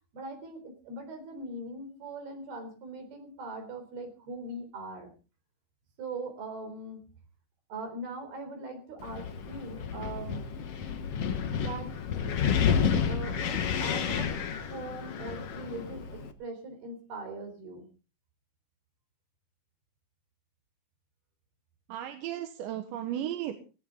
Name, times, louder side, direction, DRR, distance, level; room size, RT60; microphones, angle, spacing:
voice 1, 0.1-5.1 6.0-7.1 7.7-10.5 11.6-12.0 12.5-14.3 14.7-17.9, right 2 dB, 60° right, 6 dB, 5.6 m, -41 dB
Wind, 9.0-16.3, left 7 dB, 85° left, 1.3 m, -30 dB
voice 2, 21.9-23.6, right 11 dB, 85° right, 6 dB, 3.5 m, -35 dB
17.0 x 17.0 x 3.9 m, 0.35 s
omnidirectional pair, 5.0 m